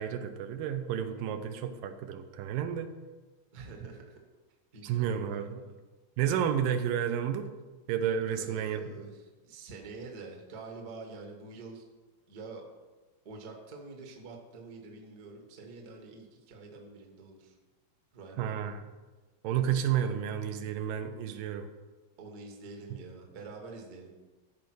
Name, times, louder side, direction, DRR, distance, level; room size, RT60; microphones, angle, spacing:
voice 1, 0.0-2.9 4.8-5.6 6.2-7.5 7.9-8.8 18.4-18.8 19.4-21.7, right 9 dB, 85° right, 8 dB, 2.5 m, -31 dB
voice 2, 3.5-4.2 4.7-5.8 8.2-11.8 12.3-12.6 13.2-17.6 18.1-18.7 22.2-24.1, right 3 dB, 45° right, 2 dB, 1.2 m, -46 dB
14.0 x 5.1 x 6.1 m, 1.2 s
omnidirectional pair, 3.9 m